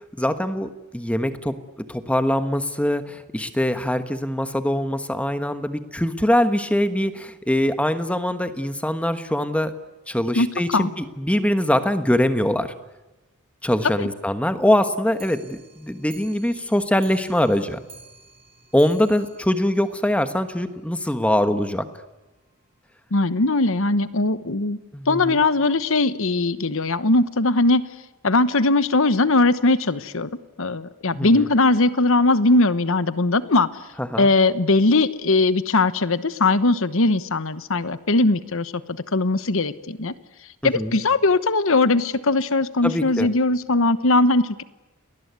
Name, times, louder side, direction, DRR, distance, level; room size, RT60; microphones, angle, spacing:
voice 1, 0.0-1.6 1.9-9.7 10.1-12.7 13.6-17.8 18.7-21.9 24.9-25.4 31.1-31.5 34.0-34.3 40.6-41.0 42.8-43.3, left 1 dB, 5° left, 10 dB, 1.3 m, -23 dB
Clock, 15.1-20.6 21.0-21.1 21.3-21.4 21.7-21.8 22.1-22.2 22.9-23.0 23.7-23.8 24.5-24.6, right 4 dB, 25° right, 3.4 m, -49 dB
voice 2, 23.1-24.8 25.1-27.9 28.2-30.3 30.6-33.7 34.2-40.1 40.6-44.6, left 2 dB, 60° left, 14 dB, 1.1 m, -20 dB
29.5 x 20.0 x 9.5 m, 1.1 s
head